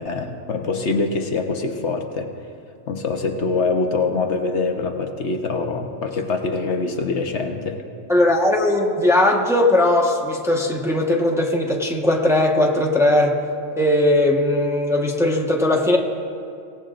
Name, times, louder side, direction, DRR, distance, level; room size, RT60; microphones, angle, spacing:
voice 1, 0.0-2.3 2.9-7.8, left 3 dB, 60° left, 4 dB, 1.2 m, -24 dB
voice 2, 8.1-13.4 13.7-16.0, left 1 dB, ahead, -1 dB, 1.1 m, -18 dB
25.0 x 17.0 x 2.5 m, 2.5 s
omnidirectional pair, 1.3 m